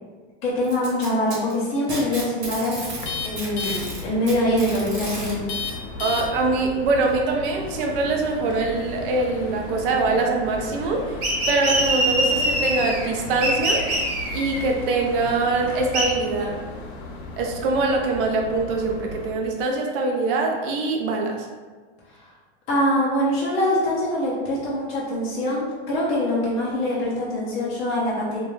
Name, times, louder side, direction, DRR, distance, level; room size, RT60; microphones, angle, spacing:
voice 1, 0.4-2.8 3.2-5.4 22.7-28.4, left 1 dB, 20° left, -6 dB, 0.4 m, -24 dB
Packing tape duct tape, 0.6-3.1 3.4-5.3 6.4-6.5 7.1-7.2 8.0-8.1, right 2 dB, 30° right, 0.8 m, -34 dB
sound 1, 3.0-19.3, left 3 dB, 75° left, 0.6 m, -35 dB
voice 2, 6.0-11.2 11.5-13.9 14.3-16.6 17.4-21.5, right 3 dB, 55° right, 1 dB, 0.5 m, -23 dB
sound 2, 11.2-13.1 13.4-14.6 15.9-16.1, right 1 dB, 80° right, 0.9 m, -23 dB
2.3 x 2.2 x 3.0 m, 1.4 s
supercardioid pair, 150°, 33 cm